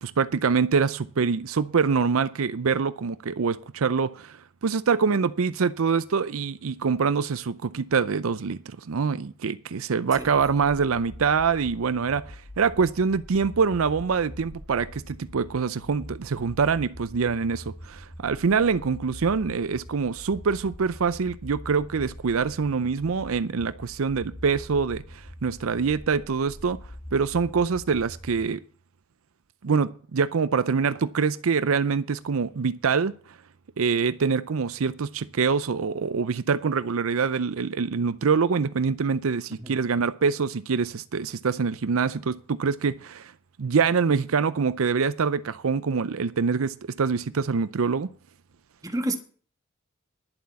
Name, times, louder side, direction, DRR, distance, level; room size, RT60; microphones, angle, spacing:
voice 1, 0.0-4.4 4.6-26.8 27.1-28.6 29.6-33.1 33.8-43.3 43.6-48.1, right 5 dB, 75° right, 0.5 m, -25 dB
sound 1, 10.1-28.5, left 1 dB, 75° left, 6.4 m, -44 dB
voice 2, 48.8-49.2, right 1 dB, 15° right, 1.5 m, -29 dB
11.0 x 7.6 x 7.0 m
head